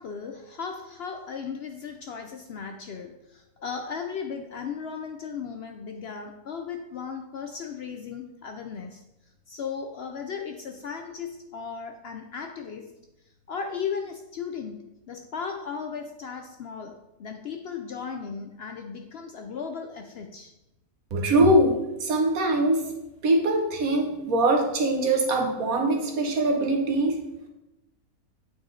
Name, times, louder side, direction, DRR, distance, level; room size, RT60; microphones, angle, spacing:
voice 1, 0.0-9.0 9.5-12.9 13.5-20.5, left 6 dB, 65° left, 5 dB, 0.6 m, -36 dB
voice 2, 21.1-22.8 23.2-27.2, right 1 dB, 75° right, 2 dB, 1.5 m, -22 dB
8.8 x 4.1 x 3.8 m, 0.95 s
omnidirectional pair, 1.5 m